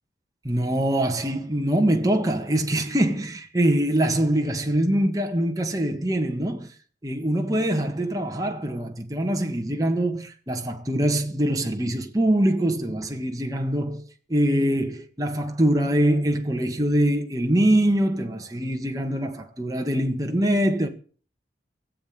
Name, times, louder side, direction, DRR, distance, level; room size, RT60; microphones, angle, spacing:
voice 1, 0.4-6.7 7.0-14.0 14.3-20.9, right 1 dB, 20° right, 1.6 m, -23 dB
17.0 x 7.8 x 7.9 m
head